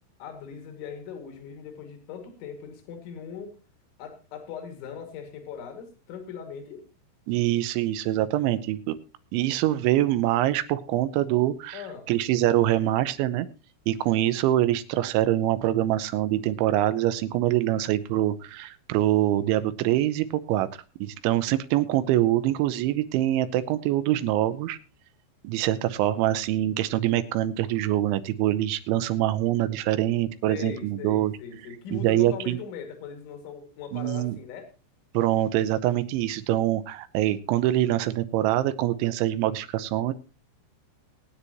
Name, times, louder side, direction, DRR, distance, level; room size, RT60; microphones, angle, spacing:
voice 1, 0.2-3.6 4.0-6.9 11.7-12.1 30.5-34.7, left 7 dB, 80° left, 5 dB, 4.5 m, -40 dB
voice 2, 7.3-9.0 9.3-11.8 12.1-13.5 13.9-20.7 21.0-24.8 25.4-31.3 31.9-32.6 33.9-34.4 35.1-40.1, right 14 dB, 85° right, 13 dB, 3.2 m, -24 dB
20.5 x 9.9 x 2.9 m, 0.32 s
omnidirectional pair, 5.3 m